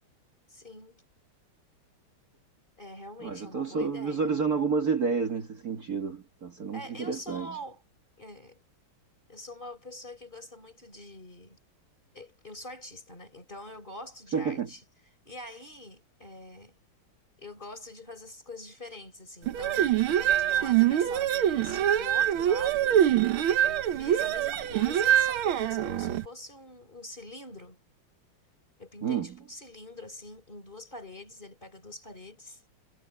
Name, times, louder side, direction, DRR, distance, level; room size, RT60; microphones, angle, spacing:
voice 1, 0.5-1.0 2.8-4.3 6.7-7.8 8.2-8.6 9.3-11.6 12.1-14.8 15.2-16.7 17.4-23.0 23.6-27.8 28.8-32.6, left 1 dB, 20° left, 4.4 m, -45 dB
voice 2, 3.2-7.5 14.3-14.7 29.0-29.3, right 5 dB, 45° right, 2.3 m, -30 dB
sound 1, 19.5-26.2, right 11 dB, 75° right, 1.8 m, -24 dB
omnidirectional pair, 2.3 m